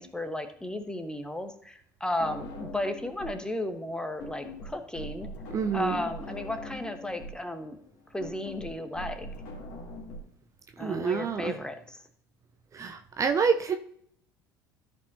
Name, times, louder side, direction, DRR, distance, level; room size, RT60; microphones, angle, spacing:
voice 1, 0.0-5.3 5.7-7.8 8.1-9.3 10.8-12.0, left 1 dB, 10° left, 8 dB, 1.2 m, -34 dB
sound 1, 2.2-3.5 3.7-10.2, left 1 dB, 55° left, 2.4 m, -42 dB
voice 2, 5.5-6.0 10.8-11.5 12.7-13.7, right 6 dB, 30° right, 6 dB, 0.6 m, -27 dB
14.0 x 5.4 x 2.7 m, 0.65 s
figure-of-eight pair, 65°, 10 cm